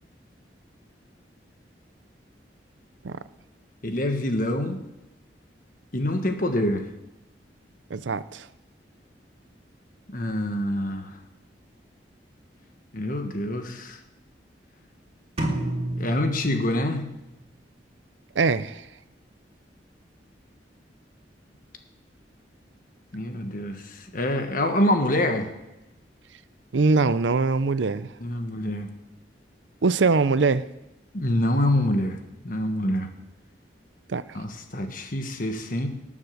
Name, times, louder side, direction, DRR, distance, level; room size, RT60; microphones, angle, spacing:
voice 1, 3.8-4.8 5.9-6.8 10.1-11.1 12.9-14.0 16.0-17.0 23.1-25.5 28.2-28.9 31.1-32.2 32.4-33.1 34.3-35.9, left 1 dB, 50° left, 6 dB, 1.4 m, -26 dB
voice 2, 7.9-8.5 18.4-18.8 26.7-28.1 29.8-30.7 34.1-34.2, right 4 dB, 85° right, 15 dB, 0.6 m, -22 dB
sound 1, 15.4-17.3, right 1 dB, 35° right, 2.4 m, -30 dB
19.0 x 7.4 x 6.6 m, 0.97 s
head